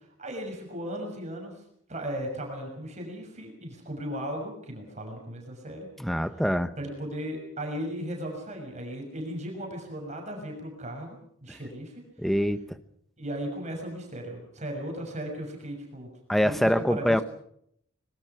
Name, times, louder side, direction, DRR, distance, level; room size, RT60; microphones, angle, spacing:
voice 1, 0.0-1.5 1.9-5.9 6.8-12.0 13.2-16.1 16.4-17.2, equal, 35° right, 2 dB, 6.4 m, -36 dB
voice 2, 6.0-6.7 11.5-11.6 12.2-12.8 16.3-17.2, equal, ahead, 12 dB, 1.1 m, -25 dB
24.5 x 22.0 x 6.0 m, 0.68 s
head